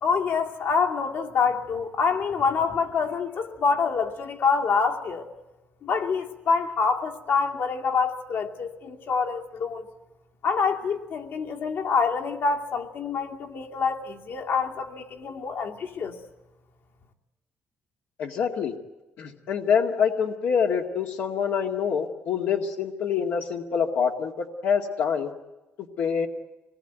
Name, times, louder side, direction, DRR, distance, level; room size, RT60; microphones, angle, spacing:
voice 1, 0.0-5.3 5.8-9.9 10.4-16.1, left 5 dB, 65° left, 3 dB, 2.5 m, -26 dB
voice 2, 18.2-18.7 19.2-25.3 26.0-26.3, left 7 dB, 80° left, 2 dB, 2.1 m, -26 dB
26.5 x 20.5 x 9.2 m, 1.1 s
cardioid pair, 130°, 4 cm